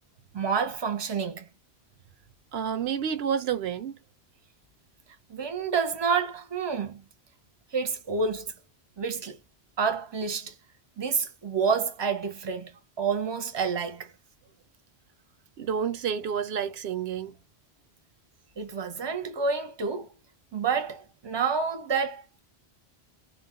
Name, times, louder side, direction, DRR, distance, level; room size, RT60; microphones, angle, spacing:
voice 1, 0.3-1.5 5.3-7.0 7.7-8.5 9.0-9.4 9.8-10.5 11.0-12.7 13.0-14.1 18.6-20.1 20.5-22.4, right 5 dB, 30° right, 0.6 m, -28 dB
voice 2, 2.5-4.0 15.6-17.4, right 8 dB, 75° right, 0.8 m, -29 dB
2.3 x 2.1 x 3.6 m
omnidirectional pair, 1.1 m